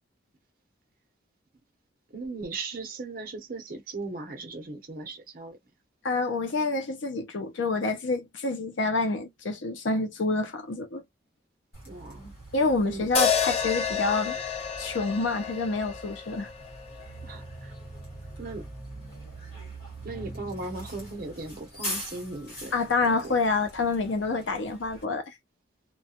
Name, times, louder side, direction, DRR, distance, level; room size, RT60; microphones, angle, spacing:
voice 1, 2.1-5.6 11.9-12.3 12.8-13.1 17.2-17.7 18.4-18.6 20.0-22.7 23.0-23.4, right 3 dB, 45° right, 0.7 m, -38 dB
voice 2, 6.0-11.0 12.5-14.4 14.8-16.5 22.7-25.3, left 3 dB, 75° left, 0.6 m, -27 dB
Bus, 11.7-25.0, right 1 dB, 50° left, 1.3 m, -43 dB
sound 1, 13.1-17.4, left 7 dB, 30° left, 0.3 m, -30 dB
2.3 x 2.2 x 2.8 m
head